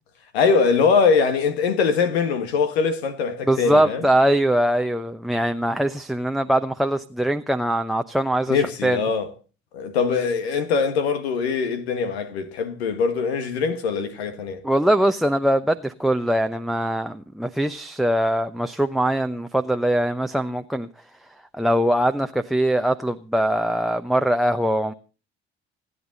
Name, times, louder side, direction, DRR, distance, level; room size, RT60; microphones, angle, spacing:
voice 1, 0.3-4.1 8.5-9.3 9.7-14.6, left 5 dB, 75° left, 1.7 m, -22 dB
voice 2, 3.5-9.0 14.6-20.9 21.5-24.9, right 1 dB, ahead, 0.9 m, -22 dB
28.5 x 9.6 x 4.0 m
figure-of-eight pair, 55°, 32 cm